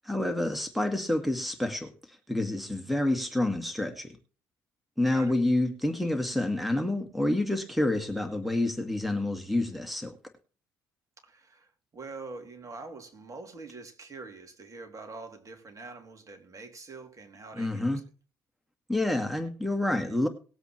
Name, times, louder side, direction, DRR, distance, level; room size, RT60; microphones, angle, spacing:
voice 1, 0.0-4.1 5.0-10.2 17.5-18.0 18.9-20.3, left 1 dB, ahead, 2.0 m, -28 dB
voice 2, 11.2-17.9, right 3 dB, 40° right, 3.0 m, -45 dB
20.0 x 8.0 x 3.2 m
hypercardioid pair, 50°, 9 cm